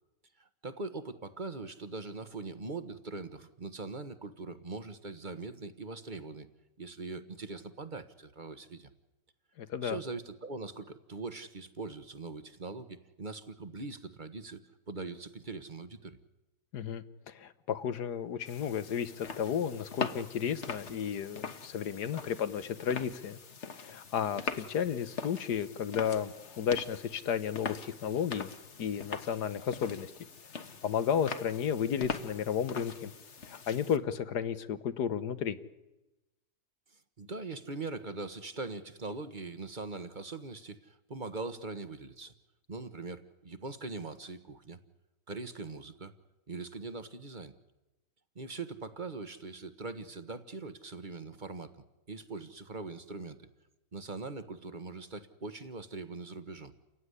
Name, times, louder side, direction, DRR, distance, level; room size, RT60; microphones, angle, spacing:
voice 1, 0.4-6.5 6.8-8.9 9.8-16.2 36.9-42.3 42.7-44.8 45.3-46.1 46.5-47.5 48.3-53.4 53.9-56.7, right 3 dB, 30° right, 11 dB, 1.3 m, -42 dB
voice 2, 9.6-10.0 16.7-23.4 23.8-28.5 28.8-30.1 30.8-33.1 33.5-35.6, left 8 dB, 70° left, 13 dB, 1.6 m, -33 dB
sound 1, 18.4-34.0, left 5 dB, 45° left, 1.5 m, -42 dB
30.0 x 16.0 x 9.8 m, 1.0 s
omnidirectional pair, 1.8 m